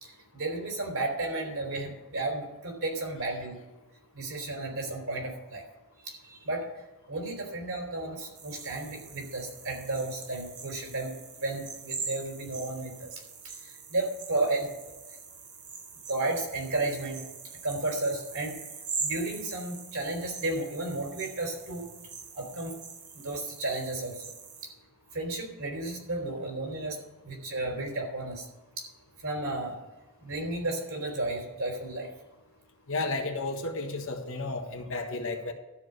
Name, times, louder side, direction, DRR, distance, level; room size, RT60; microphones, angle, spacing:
voice 1, 0.0-3.6 4.1-5.6 6.0-6.7 7.1-14.7 15.0-15.2 16.1-17.2 17.6-18.6 19.0-21.8 22.3-22.8 23.1-24.3 24.6-24.7 25.1-27.0 27.2-28.5 28.8-28.9 29.2-29.8 30.2-32.1, right 2 dB, 65° right, 3.4 m, -33 dB
sound 1, 8.3-24.6, right 5 dB, 35° right, 1.1 m, -42 dB
voice 2, 32.9-35.5, left 3 dB, 60° left, 1.4 m, -32 dB
13.0 x 4.9 x 8.0 m
head